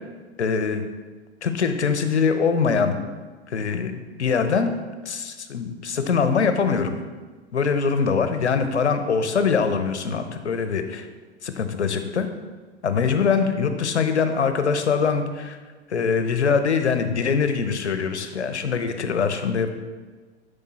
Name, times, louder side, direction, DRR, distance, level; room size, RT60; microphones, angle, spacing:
voice 1, 0.4-0.8 1.4-3.0 3.5-3.9 4.2-4.7 5.0-7.0 7.5-11.1 11.4-12.3 12.8-15.6 15.9-19.7, left 5 dB, 75° left, 8 dB, 1.0 m, -23 dB
12.0 x 5.4 x 4.2 m, 1.4 s
figure-of-eight pair, 90°, 34 cm